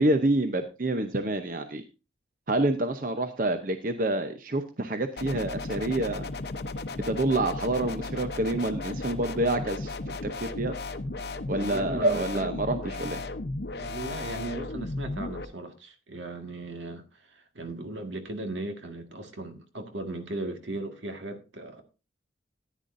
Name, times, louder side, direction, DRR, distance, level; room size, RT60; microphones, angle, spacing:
voice 1, 0.0-1.8 2.5-6.3 7.0-9.9 10.2-10.7 11.5-13.2, right 2 dB, 45° right, 0.8 m, -27 dB
sound 1, 5.2-15.5, left 2 dB, 60° left, 0.8 m, -35 dB
voice 2, 11.6-12.6 13.8-21.8, right 2 dB, 80° right, 1.8 m, -37 dB
14.0 x 10.0 x 2.6 m
head